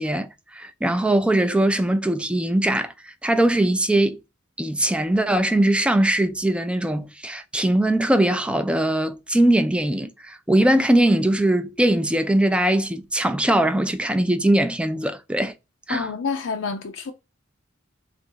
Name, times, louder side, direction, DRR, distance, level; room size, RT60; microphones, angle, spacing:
voice 1, 0.0-4.2 4.6-15.5 15.9-16.1, right 1 dB, 5° right, 0.4 m, -21 dB
voice 2, 15.9-17.1, left 5 dB, 70° left, 0.5 m, -28 dB
3.5 x 2.6 x 4.4 m
head